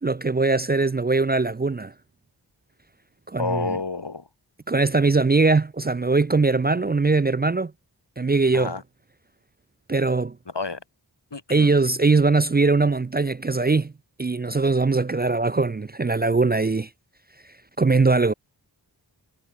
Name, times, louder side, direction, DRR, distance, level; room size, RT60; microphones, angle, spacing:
voice 1, 0.0-1.9 3.3-3.8 4.7-7.7 8.2-8.7 9.9-10.4 11.5-13.9 14.2-16.9 17.8-18.3, right 3 dB, 25° right, 0.4 m, -21 dB
voice 2, 3.4-4.3 8.5-8.8 10.5-10.8 11.3-11.8, left 4 dB, 85° left, 3.7 m, -29 dB
wide cardioid pair, 50°, 41 cm